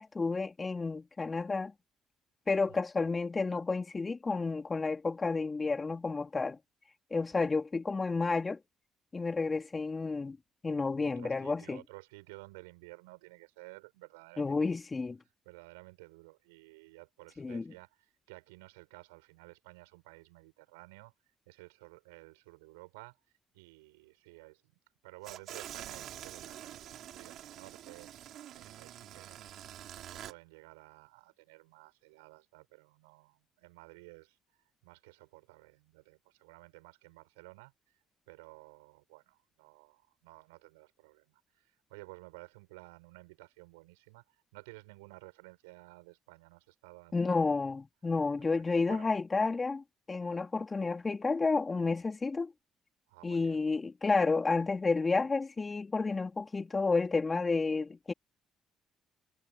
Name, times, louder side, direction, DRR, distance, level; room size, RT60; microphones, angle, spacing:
voice 1, 0.0-1.7 2.5-6.6 7.1-8.6 9.1-10.4 10.6-11.8 14.4-15.2 17.4-17.6 47.1-52.5 53.2-58.1, left 4 dB, 30° left, 3.6 m, -31 dB
voice 2, 11.0-14.7 15.5-21.1 21.5-23.2 23.5-24.7 25.0-29.6 30.1-47.4 48.9-49.1 53.1-53.6, right 25 dB, 85° right, 7.2 m, -54 dB
sound 1, 25.2-30.3, right 11 dB, 65° right, 6.5 m, -46 dB
hypercardioid pair, 50°, 0 cm